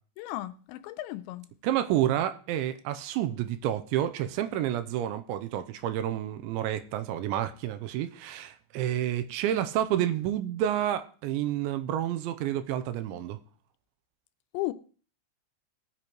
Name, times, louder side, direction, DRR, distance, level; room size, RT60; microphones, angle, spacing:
voice 1, 0.2-1.5 14.5-14.7, left 17 dB, 85° left, 2.9 m, -35 dB
voice 2, 1.6-13.4, right 11 dB, 90° right, 3.2 m, -29 dB
18.5 x 8.8 x 3.1 m
omnidirectional pair, 5.2 m